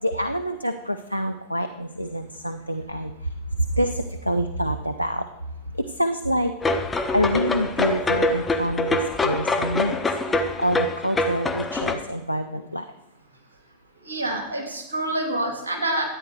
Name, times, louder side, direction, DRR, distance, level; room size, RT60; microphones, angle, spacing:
voice 1, 0.0-3.3 3.6-5.3 5.7-6.5 7.1-10.0 10.3-12.9, equal, 90° right, 9 dB, 0.5 m, -26 dB
sound 1, 6.6-11.9, left 2 dB, 15° left, 1.1 m, -24 dB
voice 2, 14.0-16.0, right 1 dB, 70° right, 1 dB, 3.1 m, -27 dB
13.0 x 9.2 x 4.7 m, 0.88 s
figure-of-eight pair, 90°, 0 cm